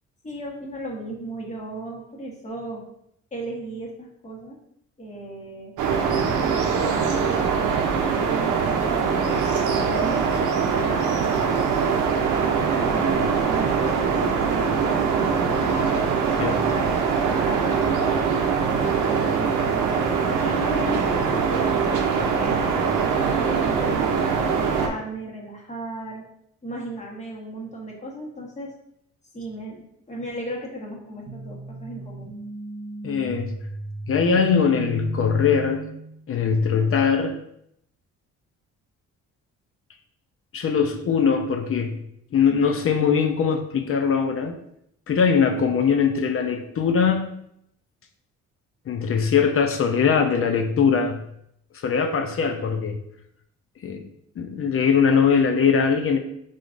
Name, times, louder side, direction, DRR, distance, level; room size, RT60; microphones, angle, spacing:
voice 1, 0.2-2.8 3.3-4.6 5.0-5.7 6.4-11.3 12.1-15.9 16.4-18.4 18.7-19.6 20.4-22.9 23.3-26.2 26.6-28.7 29.3-32.3, right 1 dB, 25° left, -2 dB, 1.3 m, -36 dB
sound 1, 5.8-24.9, right 6 dB, 85° right, 0.7 m, -22 dB
sound 2, 30.3-36.2, right 2 dB, 55° right, 1.0 m, -36 dB
voice 2, 33.0-33.6 34.1-35.9 36.3-37.4 40.5-42.0 42.3-44.6 45.1-47.4 48.9-51.3 51.7-53.0 53.8-54.1 54.4-56.2, left 6 dB, 45° left, 6 dB, 0.7 m, -21 dB
5.0 x 3.7 x 2.6 m, 0.74 s
cardioid pair, 90°, 30 cm